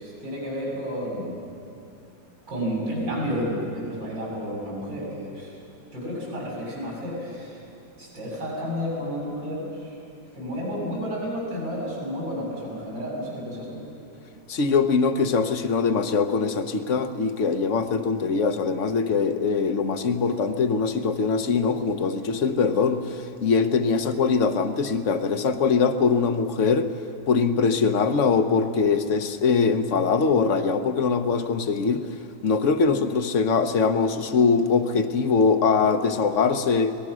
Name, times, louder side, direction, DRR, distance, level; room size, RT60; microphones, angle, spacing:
voice 1, 0.0-1.4 2.5-5.6 5.9-7.6 8.0-10.0 10.3-13.9, equal, 90° right, -4 dB, 8.3 m, -31 dB
voice 2, 14.5-26.9 27.3-32.0 32.4-36.9, left 5 dB, 50° left, 9 dB, 1.1 m, -22 dB
25.0 x 19.5 x 6.3 m, 2.6 s
omnidirectional pair, 2.0 m